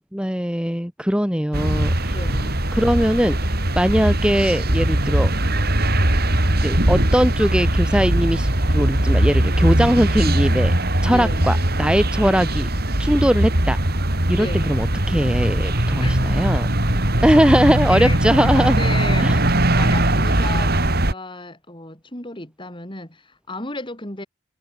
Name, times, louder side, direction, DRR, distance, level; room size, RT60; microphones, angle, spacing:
voice 1, 0.1-2.2 2.7-5.3 6.6-10.7 11.0-12.7 13.0-13.8 14.3-16.7 17.2-18.8 19.2-19.4, equal, 5° right, 2.0 m, -20 dB
sound 1, 1.5-21.1, right 1 dB, 50° right, 4.0 m, -20 dB
voice 2, 2.1-2.6 11.1-11.4 12.2-12.5 14.3-14.8 16.0-16.1 17.4-18.2 18.6-24.3, left 2 dB, 25° left, 5.9 m, -34 dB
head